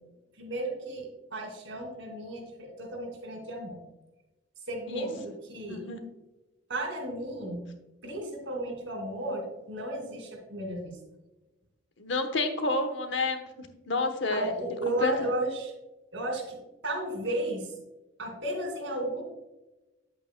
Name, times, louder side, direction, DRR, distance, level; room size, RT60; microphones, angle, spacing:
voice 1, 0.3-3.8 4.7-5.8 6.7-7.7 8.0-11.0 14.3-15.7 16.1-17.7 18.2-19.2, right 1 dB, 75° right, 2 dB, 2.4 m, -34 dB
voice 2, 5.7-6.0 12.0-14.5 14.9-15.1, left 2 dB, 65° left, 7 dB, 1.1 m, -30 dB
9.3 x 8.3 x 2.2 m, 1.0 s
head